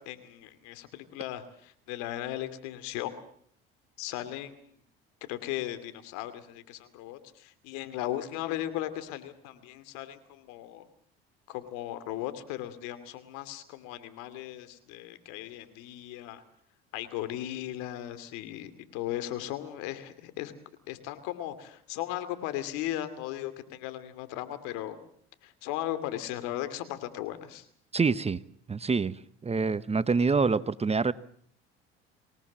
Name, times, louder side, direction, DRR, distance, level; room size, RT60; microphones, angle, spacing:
voice 1, 0.0-3.1 4.0-4.7 5.2-10.9 11.5-16.4 16.9-20.5 20.9-25.0 25.4-27.7, left 13 dB, 75° left, 11 dB, 2.8 m, -37 dB
voice 2, 27.9-28.4 28.7-29.2 29.4-31.1, right 4 dB, 20° right, 16 dB, 1.0 m, -26 dB
25.5 x 18.5 x 7.5 m, 0.64 s
hypercardioid pair, 75°, 30 cm